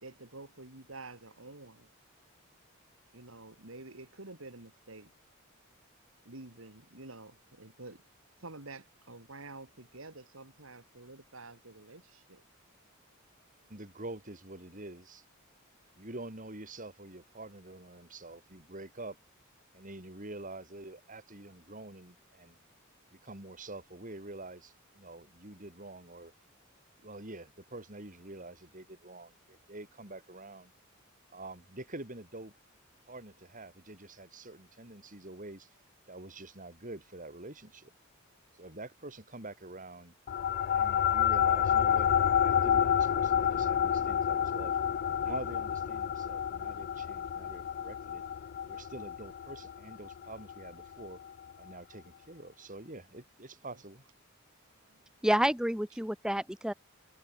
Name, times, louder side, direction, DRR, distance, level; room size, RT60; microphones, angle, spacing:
voice 1, 0.0-1.9 3.1-5.1 6.2-8.0 8.4-12.4 54.9-55.0, right 2 dB, 70° right, 3.3 m, -49 dB
voice 2, 13.7-15.2 16.0-19.2 19.7-22.5 23.1-26.3 27.0-30.7 31.3-32.5 33.1-35.7 36.1-37.9 38.6-40.1 40.7-42.1 42.4-44.8 45.2-48.2 48.7-51.2 51.6-54.0, right 2 dB, 40° right, 4.8 m, -46 dB
sound 1, 40.3-51.1, left 9 dB, 50° left, 0.3 m, -29 dB
voice 3, 55.2-56.7, equal, 5° right, 1.4 m, -29 dB
head